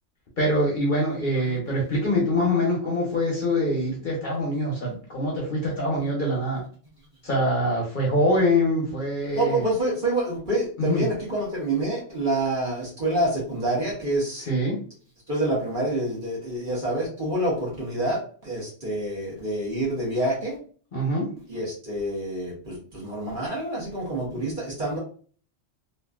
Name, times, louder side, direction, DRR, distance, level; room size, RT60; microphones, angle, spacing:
voice 1, 0.4-6.6 7.2-9.6 10.8-11.1 14.5-14.8 20.9-21.3, left 1 dB, 45° left, -3 dB, 0.8 m, -24 dB
voice 2, 9.3-14.4 15.3-20.6 21.5-25.0, right 1 dB, 45° right, -5 dB, 1.2 m, -27 dB
3.0 x 2.4 x 2.3 m, 0.43 s
omnidirectional pair, 1.3 m